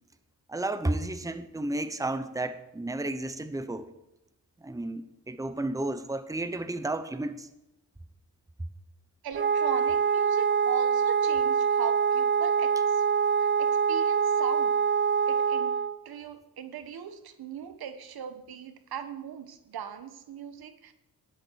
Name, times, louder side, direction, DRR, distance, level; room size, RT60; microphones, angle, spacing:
voice 1, 0.5-3.9 4.6-7.5, right 2 dB, 10° right, 1.0 m, -32 dB
voice 2, 9.2-13.0 13.4-14.7 15.3-15.7 16.0-20.9, right 8 dB, 75° right, 1.3 m, -39 dB
Wind instrument woodwind instrument, 9.3-16.0, right 6 dB, 30° right, 0.7 m, -25 dB
11.0 x 11.0 x 4.7 m
cardioid pair, 70°, 38 cm